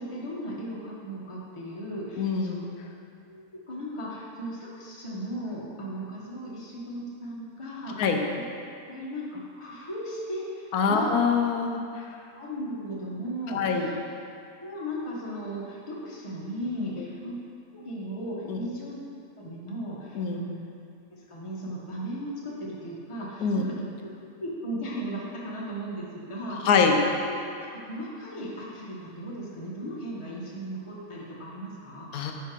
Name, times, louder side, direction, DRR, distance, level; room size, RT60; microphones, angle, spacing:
voice 1, 0.0-2.6 3.2-8.2 8.9-11.1 12.4-13.9 14.6-17.3 17.7-18.9 19.4-20.6 21.1-23.7 24.3-26.7 27.2-27.3 27.6-32.1, equal, 25° left, -5 dB, 1.0 m, -36 dB
voice 2, 2.2-2.6 8.0-8.2 10.7-11.8 13.5-13.9 16.8-17.1 18.5-18.6 20.1-20.4 23.4-23.6 26.6-27.0 32.1-32.3, left 5 dB, 90° left, 3 dB, 1.1 m, -24 dB
9.3 x 3.3 x 4.5 m, 2.5 s
omnidirectional pair, 1.6 m